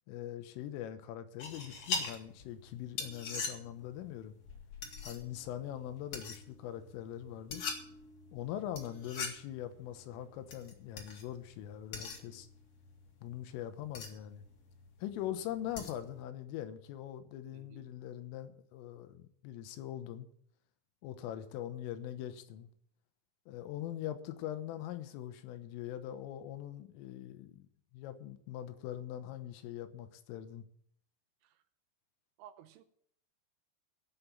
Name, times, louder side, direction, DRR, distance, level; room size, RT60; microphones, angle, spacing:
voice 1, 0.1-4.4 5.0-7.7 8.3-12.5 13.2-14.4 15.0-20.3 21.0-22.7 23.5-27.7 27.9-30.6, left 11 dB, 85° left, 3.7 m, -42 dB
sound 1, 1.4-16.2, left 4 dB, 50° left, 2.2 m, -44 dB
voice 2, 17.5-17.8 31.4-31.6 32.4-32.8, right 10 dB, 80° right, 2.8 m, -55 dB
15.0 x 5.9 x 8.7 m
omnidirectional pair, 5.7 m